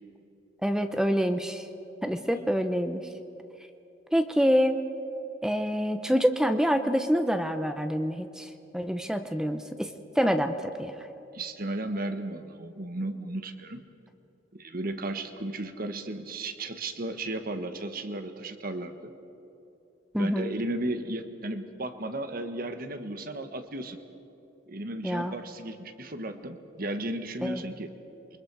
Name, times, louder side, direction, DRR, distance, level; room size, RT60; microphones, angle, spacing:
voice 1, 0.6-1.7 2.0-3.1 4.1-4.8 5.4-9.9 10.2-10.9 20.1-20.5 25.0-25.3 27.4-27.6, equal, 5° right, 7 dB, 0.8 m, -26 dB
voice 2, 11.3-13.8 14.5-19.1 20.2-24.0 24.7-27.9, right 1 dB, 50° right, 8 dB, 1.4 m, -34 dB
28.0 x 23.5 x 4.8 m, 2.9 s
head